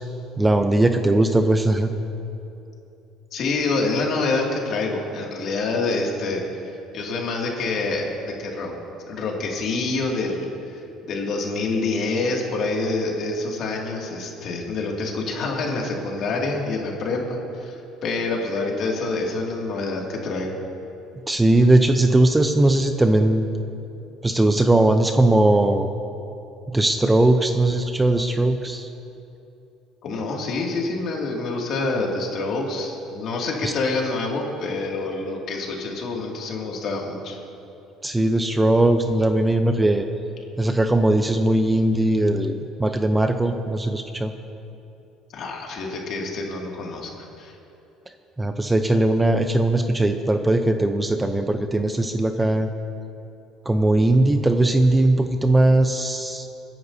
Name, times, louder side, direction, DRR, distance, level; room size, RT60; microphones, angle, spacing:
voice 1, 0.4-1.9 21.3-23.5 24.2-25.9 26.7-28.9 33.6-33.7 38.0-40.0 40.6-44.3 48.4-52.7 53.7-56.5, right 1 dB, 10° right, 7 dB, 0.6 m, -19 dB
voice 2, 3.3-6.4 6.9-8.7 9.1-20.5 30.0-37.4 45.3-47.5, left 3 dB, 55° left, -1 dB, 2.3 m, -27 dB
26.5 x 10.5 x 2.8 m, 2.8 s
cardioid pair, 120°, 0 cm